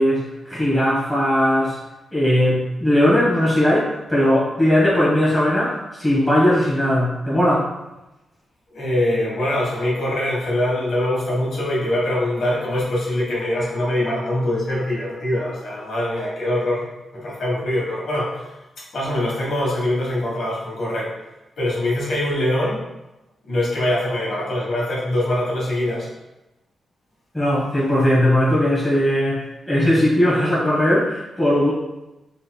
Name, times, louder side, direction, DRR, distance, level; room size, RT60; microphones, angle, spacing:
voice 1, 0.0-1.8 2.1-7.7 27.3-31.7, left 1 dB, 5° left, -7 dB, 1.3 m, -18 dB
voice 2, 8.7-16.8 17.1-18.6 18.9-21.1 21.6-22.8 23.5-26.1, left 1 dB, 65° left, -5 dB, 1.3 m, -23 dB
4.2 x 3.5 x 2.2 m, 0.98 s
wide cardioid pair, 150°, 0 cm